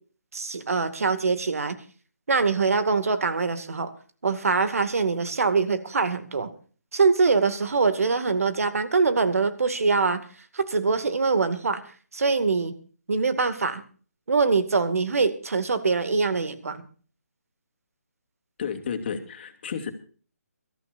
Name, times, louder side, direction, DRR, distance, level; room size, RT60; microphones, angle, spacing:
voice 1, 0.3-1.8 2.3-3.9 4.2-6.5 6.9-10.2 10.5-11.8 12.1-12.7 13.1-13.8 14.3-16.8, right 4 dB, 65° right, 11 dB, 2.2 m, -23 dB
voice 2, 18.6-19.9, left 7 dB, 40° left, 6 dB, 2.5 m, -32 dB
23.5 x 14.0 x 2.6 m, 0.41 s
figure-of-eight pair, 150°, 9 cm